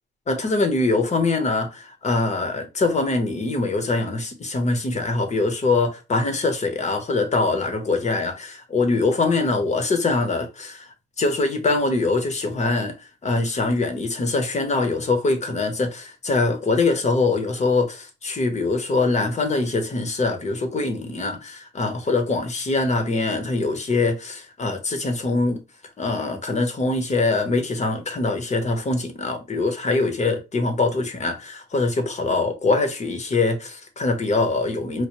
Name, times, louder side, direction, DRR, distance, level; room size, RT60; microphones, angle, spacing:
voice 1, 0.3-10.9 11.2-12.9 13.2-25.6 26.0-35.0, left 3 dB, 35° left, 0.9 m, -23 dB
4.5 x 2.2 x 3.0 m
cardioid pair, 90°, 20 cm